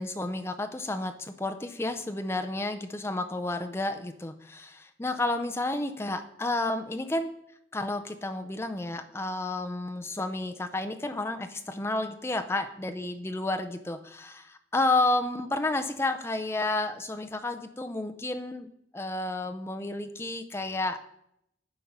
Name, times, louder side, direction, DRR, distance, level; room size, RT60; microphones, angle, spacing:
voice 1, 0.0-7.3 7.7-18.7 18.9-21.0, left 2 dB, 15° left, 7 dB, 0.5 m, -31 dB
9.6 x 4.5 x 5.5 m, 0.76 s
head